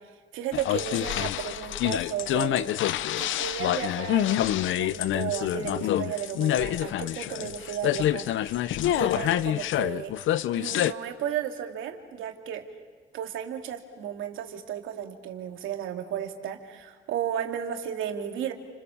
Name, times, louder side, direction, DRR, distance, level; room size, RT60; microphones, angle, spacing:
voice 1, 0.3-2.7 3.2-4.4 4.8-8.7 8.9-10.1 10.6-12.6 13.1-18.5, right 9 dB, 90° right, 4 dB, 2.5 m, -34 dB
sound 1, 0.5-10.9, left 12 dB, 80° left, 0.8 m, -27 dB
30.0 x 27.0 x 7.2 m, 1.5 s
cardioid pair, 90°, 20 cm